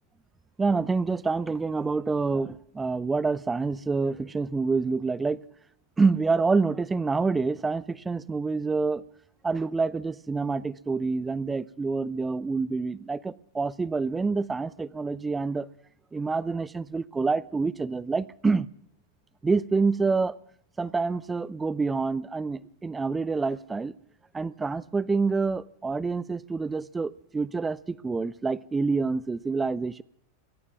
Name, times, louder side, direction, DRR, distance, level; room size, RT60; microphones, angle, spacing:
voice 1, 0.6-5.4 6.0-9.0 9.4-15.7 16.1-18.7 19.4-20.3 20.8-23.9 24.3-30.0, right 4 dB, 10° right, 21 dB, 0.5 m, -27 dB
27.5 x 21.5 x 2.4 m, 0.71 s
figure-of-eight pair, 90°, 0 cm